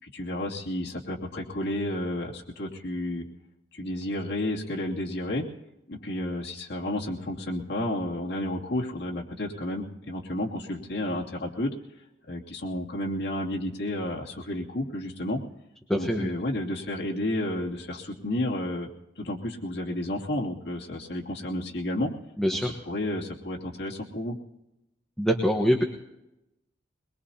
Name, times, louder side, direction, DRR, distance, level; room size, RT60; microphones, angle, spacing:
voice 1, 0.0-3.2 3.7-5.5 5.9-11.7 12.3-15.4 15.9-18.9 19.2-22.1 22.5-24.3, left 1 dB, 60° left, -2 dB, 2.8 m, -31 dB
voice 2, 15.9-16.3 22.4-22.7 25.2-25.8, equal, 5° left, 2 dB, 1.2 m, -24 dB
22.5 x 22.0 x 2.9 m, 0.91 s
head